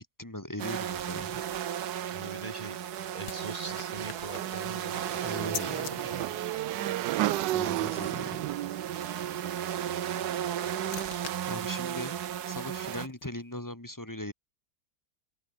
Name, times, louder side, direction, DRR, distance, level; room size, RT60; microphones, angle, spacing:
voice 1, 0.0-1.4 5.2-6.2 7.5-8.5 11.5-12.1 12.5-14.3, left 1 dB, 10° left, 2.1 m, -39 dB
sound 1, 0.6-13.1, right 10 dB, 65° right, 1.5 m, -35 dB
voice 2, 2.1-2.8 3.1-6.4, right 3 dB, 25° right, 1.1 m, -43 dB
sound 2, 2.5-5.9 10.1-13.4, left 7 dB, 90° left, 2.6 m, -46 dB
Motorcycle / Engine, 4.3-10.4, right 15 dB, 80° right, 1.3 m, -34 dB
open air
omnidirectional pair, 1.9 m